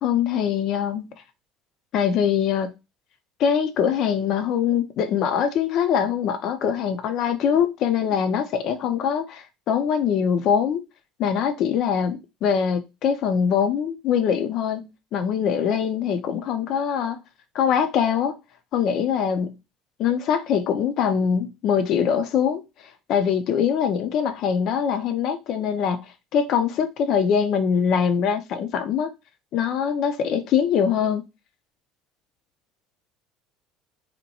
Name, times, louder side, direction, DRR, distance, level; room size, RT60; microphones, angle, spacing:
voice 1, 0.0-1.1 1.9-2.7 3.4-10.8 11.2-17.2 17.5-18.4 18.7-19.6 20.0-22.6 23.1-29.1 29.5-31.2, left 7 dB, 55° left, 0.4 m, -23 dB
2.7 x 2.1 x 2.8 m
hypercardioid pair, 65°, 0 cm